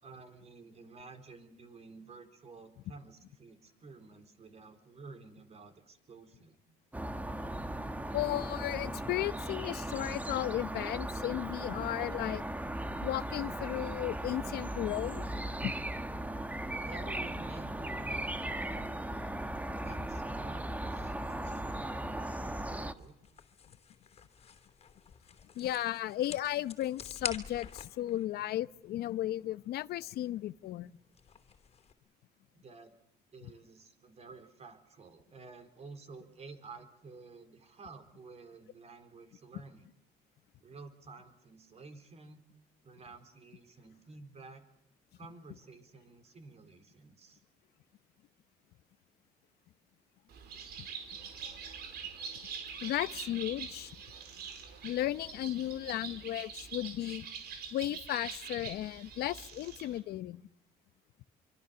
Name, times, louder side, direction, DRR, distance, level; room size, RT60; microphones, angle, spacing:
voice 1, 0.0-6.6 16.8-19.1 19.8-22.7 22.9-23.2 32.5-32.9 33.3-39.9 40.6-42.4 42.8-44.6 45.2-47.4, right 3 dB, 40° right, 4.0 m, -52 dB
sound 1, 6.9-22.9, right 1 dB, 10° right, 1.4 m, -37 dB
voice 2, 8.1-12.4 13.0-15.3 15.6-15.7 25.5-31.0 52.8-53.9 54.8-57.3 57.7-60.4, left 14 dB, 70° left, 0.9 m, -35 dB
sound 2, 21.6-31.9, left 6 dB, 35° left, 3.2 m, -49 dB
Bird, 50.3-60.0, right 6 dB, 70° right, 4.7 m, -44 dB
25.5 x 25.0 x 6.9 m
cardioid pair, 110°, 17 cm